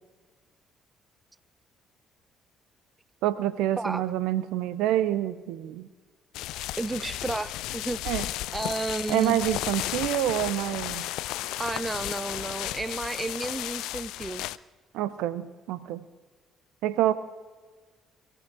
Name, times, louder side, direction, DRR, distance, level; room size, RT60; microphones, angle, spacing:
voice 1, 3.2-5.9 8.0-8.3 9.1-11.1 14.9-16.0 16.8-17.1, right 13 dB, 70° right, 0.6 m, -27 dB
sound 1, 6.3-14.6, left 15 dB, 70° left, 0.4 m, -34 dB
voice 2, 6.8-9.4 11.6-14.5, right 2 dB, 20° right, 0.6 m, -32 dB
22.5 x 13.0 x 3.7 m
hypercardioid pair, 50°, 0 cm